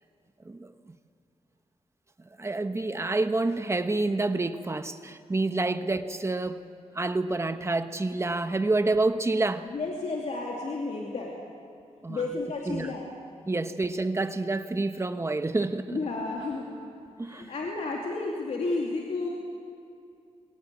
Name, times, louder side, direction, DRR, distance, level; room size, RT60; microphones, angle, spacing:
voice 1, 0.4-1.0 2.4-6.6 6.9-9.7 12.0-12.2 12.7-12.9 13.5-16.0 17.2-17.5, right 2 dB, 25° right, 9 dB, 1.1 m, -28 dB
voice 2, 9.6-11.3 12.1-13.1 15.9-16.7 17.1-19.3, left 3 dB, 65° left, -2 dB, 2.7 m, -32 dB
22.5 x 18.5 x 8.3 m, 2.5 s
wide cardioid pair, 100°, 12 cm